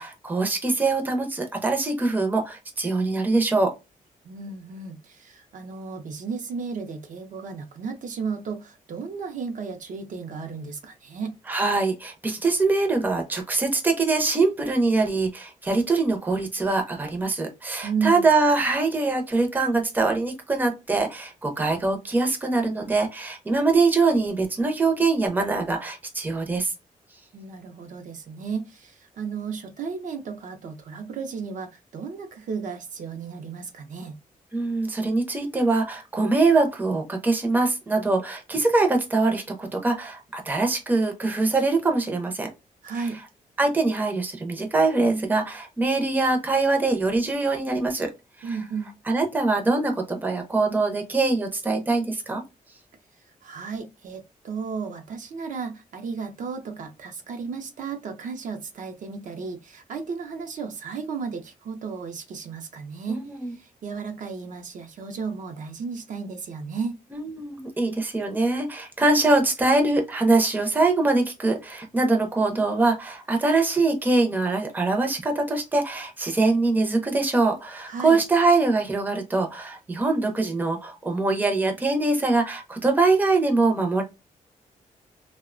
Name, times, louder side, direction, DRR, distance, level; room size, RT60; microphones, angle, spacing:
voice 1, 0.0-3.7 11.5-26.7 34.5-42.5 43.0-43.1 43.6-48.1 48.4-48.6 49.1-52.4 63.1-63.5 67.1-84.0, right 3 dB, 10° right, 0.5 m, -23 dB
voice 2, 4.2-11.3 17.8-18.2 27.3-34.1 42.8-43.2 48.4-48.9 53.4-67.0 77.9-78.2, right 5 dB, 60° right, 0.5 m, -34 dB
2.7 x 2.1 x 2.4 m
wide cardioid pair, 135°, 15 cm